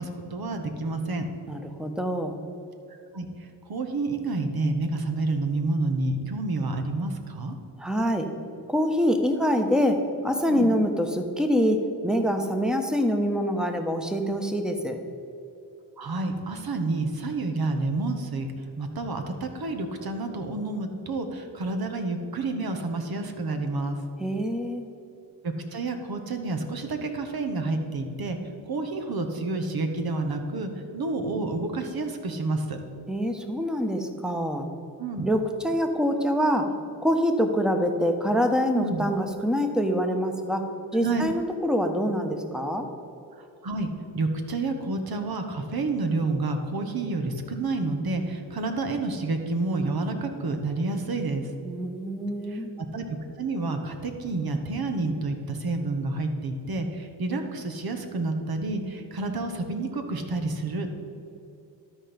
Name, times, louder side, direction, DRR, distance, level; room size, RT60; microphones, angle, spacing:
voice 1, 0.0-1.3 3.1-7.6 10.5-10.7 16.0-18.5 18.8-24.0 25.4-28.4 28.7-32.8 35.0-35.3 38.7-39.1 41.0-41.2 43.6-43.9 44.1-51.5 52.5-53.1 53.4-60.9, right 3 dB, 55° right, 5 dB, 1.2 m, -29 dB
voice 2, 1.5-2.4 7.8-8.3 8.7-15.0 24.2-24.9 33.1-34.7 35.2-36.7 37.0-40.7 40.9-42.9 51.6-52.7, equal, ahead, 5 dB, 1.1 m, -25 dB
12.5 x 4.5 x 5.2 m, 2.8 s
supercardioid pair, 45°, 43 cm